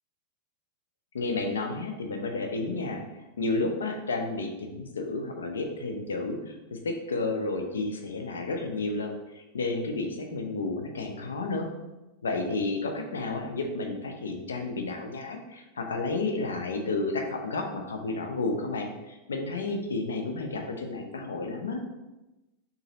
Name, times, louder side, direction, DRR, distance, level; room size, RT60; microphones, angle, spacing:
voice 1, 1.1-11.7 12.2-21.8, left 3 dB, 70° left, 4 dB, 0.6 m, -31 dB
6.4 x 2.7 x 2.9 m, 1.0 s
figure-of-eight pair, 90°, 0 cm